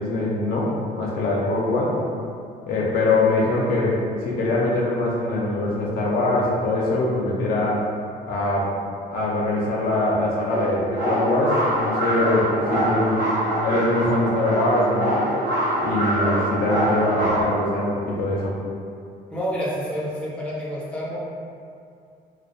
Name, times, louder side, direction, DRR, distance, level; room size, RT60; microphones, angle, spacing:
voice 1, 0.0-2.0 2.7-7.9 8.3-8.7 9.1-13.2 13.6-15.3 15.8-18.5, left 2 dB, 60° left, -4 dB, 0.5 m, -23 dB
sound 1, 10.4-17.4, right 1 dB, 80° right, 0.7 m, -24 dB
voice 2, 19.3-21.2, equal, 5° left, -7 dB, 0.5 m, -28 dB
2.3 x 2.1 x 2.5 m, 2.4 s
cardioid pair, 110°, 17 cm